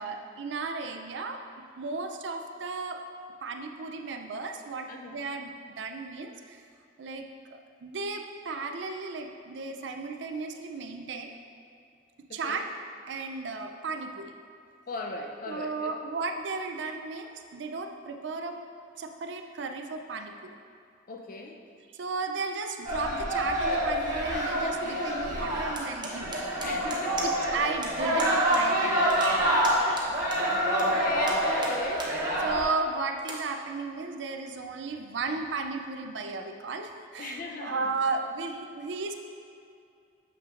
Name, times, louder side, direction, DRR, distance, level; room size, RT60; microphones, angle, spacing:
voice 1, 0.0-1.4 1.8-3.0 3.4-6.6 7.0-11.3 12.3-12.7 13.1-14.3 15.5-18.6 19.0-20.6 21.9-26.3 27.2-30.0 32.4-39.1, right 3 dB, 65° right, 5 dB, 0.4 m, -34 dB
voice 2, 4.9-5.2 12.3-12.6 14.9-15.9 21.1-21.6 26.6-27.3 29.8-32.1 37.2-37.9, left 2 dB, 45° left, 2 dB, 0.5 m, -38 dB
sound 1, 22.8-32.6, equal, 45° right, 1.4 m, -27 dB
sound 2, 25.8-27.5 27.8-27.9 28.2-28.6 28.9-30.8 31.2-32.1 32.6-32.7 33.2-33.4, right 3 dB, 25° right, 0.7 m, -39 dB
7.2 x 5.7 x 2.5 m, 2.5 s
head